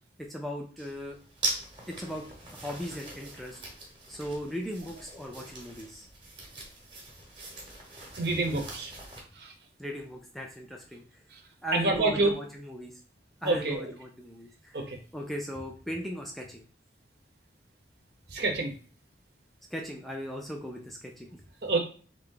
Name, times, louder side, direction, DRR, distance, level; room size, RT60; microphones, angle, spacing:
voice 1, 0.2-1.2 1.9-2.2 2.5-3.6 4.1-6.1 8.2-8.4 9.8-11.0 11.6-13.0 13.4-14.8 15.1-16.6 19.7-21.4 21.6-21.7, equal, ahead, 0 dB, 0.4 m, -38 dB
sound 1, 0.8-9.2, right 2 dB, 25° right, 1.0 m, -41 dB
voice 2, 8.2-8.9 9.4-9.5 11.7-12.3 13.4-13.9 14.7-15.0 18.3-18.7 21.6-21.8, right 2 dB, 65° right, 3 dB, 0.9 m, -27 dB
3.4 x 2.7 x 3.8 m, 0.39 s
head